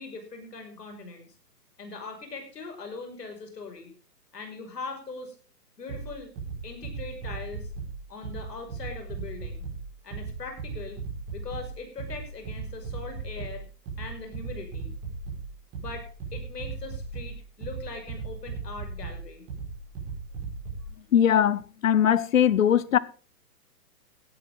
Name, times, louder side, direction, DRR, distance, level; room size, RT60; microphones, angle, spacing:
voice 1, 0.0-1.4 1.8-3.9 4.3-5.4 5.8-6.3 6.6-7.7 8.1-9.7 10.0-11.0 11.3-13.6 14.0-14.9 15.8-19.4, left 4 dB, 70° left, 5.9 m, -41 dB
sound 1, 5.9-20.9, right 4 dB, 20° right, 5.5 m, -37 dB
voice 2, 21.1-23.0, left 9 dB, 55° left, 0.9 m, -21 dB
17.5 x 12.5 x 3.8 m
hypercardioid pair, 160°, 49 cm